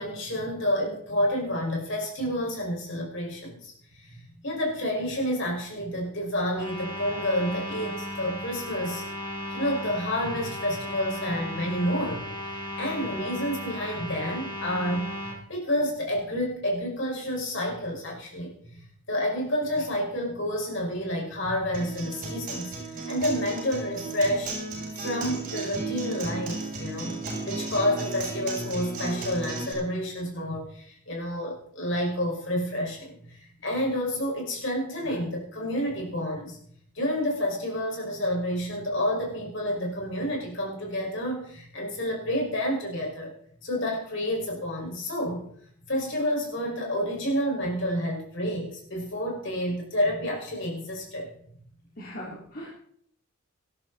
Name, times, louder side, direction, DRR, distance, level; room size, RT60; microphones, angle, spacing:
voice 1, 0.0-9.0 9.5-15.1 15.5-24.6 25.0-27.2 27.4-36.6 37.0-43.3 43.6-45.4 45.8-51.3, equal, 55° left, -1 dB, 5.6 m, -29 dB
sound 1, 6.5-15.4, left 1 dB, 20° left, 4.7 m, -36 dB
Acoustic guitar, 21.7-29.7, right 3 dB, 35° right, 7.5 m, -34 dB
voice 2, 52.0-52.7, equal, 40° left, -5 dB, 3.3 m, -39 dB
19.0 x 12.5 x 4.2 m, 0.63 s
head